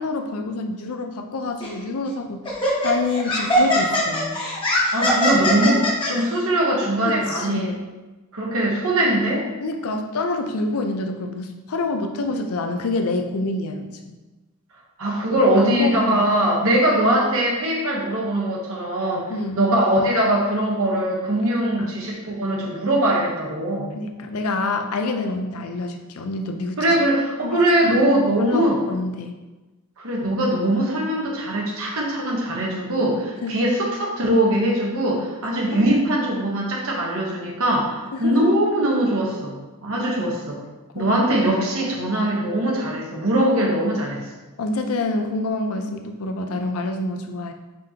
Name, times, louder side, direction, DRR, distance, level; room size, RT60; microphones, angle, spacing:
voice 1, 0.0-2.4 2.8-4.4 5.2-5.4 7.1-7.8 9.6-14.2 15.3-16.3 19.3-19.6 21.8-21.9 23.9-27.0 27.4-28.0 28.4-29.4 33.4-33.6 35.5-35.9 38.1-38.5 39.9-40.4 41.0-41.6 44.6-47.5, left 2 dB, 75° left, 5 dB, 0.5 m, -27 dB
Laughter, 1.6-1.8 2.4-6.1, equal, 20° left, 1.0 m, -21 dB
voice 2, 4.9-7.7 8.3-9.5 15.0-24.0 26.8-28.8 30.0-40.6 40.9-44.2, right 1 dB, 65° right, -2 dB, 1.1 m, -21 dB
5.2 x 3.6 x 2.9 m, 1.2 s
head